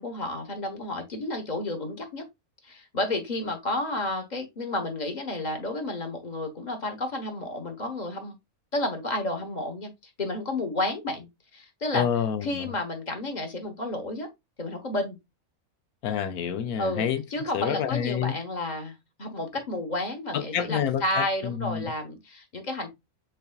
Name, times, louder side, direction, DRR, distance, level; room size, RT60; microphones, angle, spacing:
voice 1, 0.0-2.2 2.6-8.4 8.7-12.1 12.4-14.3 14.6-15.2 16.8-22.9, left 2 dB, 35° left, 1.1 m, -31 dB
voice 2, 11.9-12.7 16.0-17.2 17.5-18.4 20.3-21.8, left 9 dB, 85° left, 1.2 m, -28 dB
5.5 x 4.1 x 2.3 m
omnidirectional pair, 1.5 m